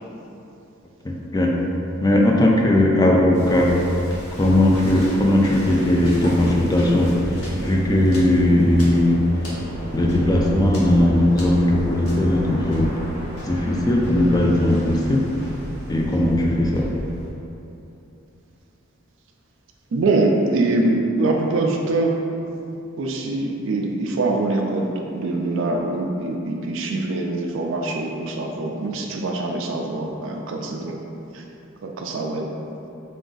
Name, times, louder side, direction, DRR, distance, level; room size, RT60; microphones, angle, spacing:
voice 1, 1.0-1.5 2.0-3.7 4.4-7.1 7.6-9.2 9.9-12.9 13.5-15.2 15.9-16.9, left 1 dB, 20° left, -1 dB, 0.3 m, -18 dB
Waves surf, 3.3-17.3, equal, 85° left, 1.0 m, -33 dB
voice 2, 19.9-22.2 23.0-31.0 31.3-31.4 31.8-32.5, right 2 dB, 60° right, 1 dB, 0.3 m, -23 dB
3.7 x 2.5 x 3.8 m, 2.8 s
head